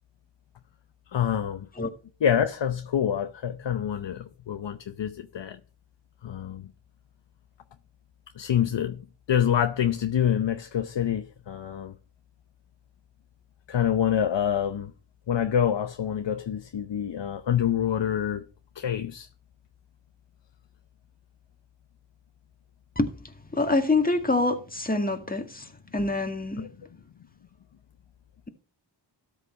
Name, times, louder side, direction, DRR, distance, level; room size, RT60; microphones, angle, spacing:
voice 1, 1.1-1.7 2.2-5.6 6.2-6.7 8.4-9.0 9.3-11.9 13.7-14.9 15.3-18.4 18.8-19.3 26.6-26.7, left 9 dB, 70° left, 0.8 m, -26 dB
voice 2, 23.5-26.7, left 2 dB, 20° left, 1.9 m, -26 dB
13.0 x 5.5 x 5.4 m
cardioid pair, 55°, 45 cm